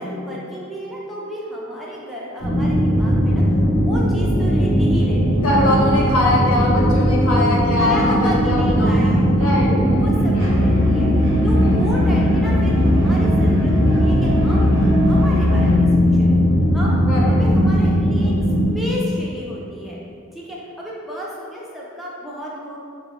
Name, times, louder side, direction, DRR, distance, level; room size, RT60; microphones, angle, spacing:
voice 1, 0.0-5.5 7.7-9.5 9.9-16.3 16.7-18.3 18.7-20.0 20.3-22.8, equal, ahead, -5 dB, 0.3 m, -32 dB
sound 1, 2.4-18.6, equal, 40° left, 0.8 m, -18 dB
voice 2, 5.4-10.6 11.6-11.8 17.1-17.3, left 1 dB, 85° left, -4 dB, 0.6 m, -22 dB
Musical instrument, 10.4-15.9, left 2 dB, 60° right, 0.5 m, -21 dB
2.4 x 2.1 x 3.4 m, 2.3 s
head